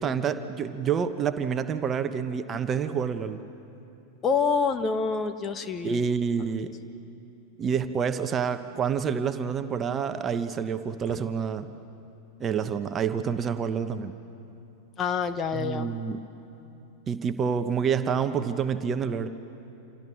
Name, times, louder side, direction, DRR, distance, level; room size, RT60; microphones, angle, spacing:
voice 1, 0.0-3.4 5.8-6.7 7.6-11.7 12.4-14.1 15.5-16.2 17.1-19.3, right 7 dB, 25° right, 9 dB, 1.2 m, -28 dB
voice 2, 4.2-6.0 15.0-15.9, left 5 dB, 25° left, 9 dB, 1.4 m, -27 dB
28.0 x 27.0 x 7.6 m, 2.9 s
figure-of-eight pair, 90°, 0 cm